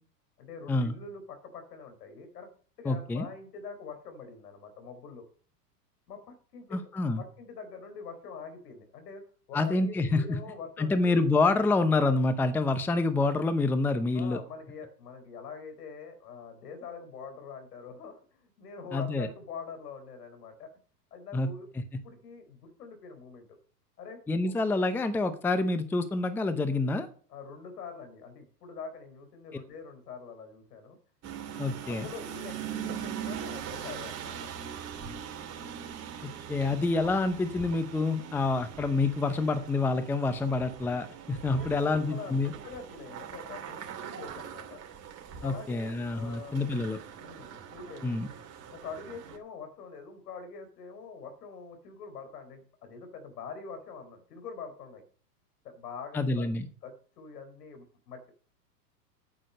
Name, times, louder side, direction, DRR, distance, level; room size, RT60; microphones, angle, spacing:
voice 1, 0.4-2.5 2.8-5.2 6.1-6.9 7.2-9.2 9.5-11.2 14.1-20.7 21.1-21.7 22.0-23.6 24.0-24.5 27.3-31.0 31.9-34.4 41.5-44.8 45.3-46.6 47.2-48.2 48.7-55.0 55.6-56.5 56.8-58.3, left 5 dB, 70° left, 7 dB, 4.4 m, -44 dB
voice 2, 2.8-3.3 6.7-7.2 9.5-10.4 10.8-14.4 18.9-19.3 21.3-21.5 24.3-27.1 31.6-32.1 36.2-42.5 45.4-47.0 48.0-48.3 56.1-56.7, left 3 dB, 5° left, 11 dB, 0.6 m, -27 dB
sound 1, 31.2-49.4, right 8 dB, 30° right, 2.7 m, -42 dB
9.2 x 8.6 x 6.5 m, 0.43 s
hypercardioid pair, 115°, 49 cm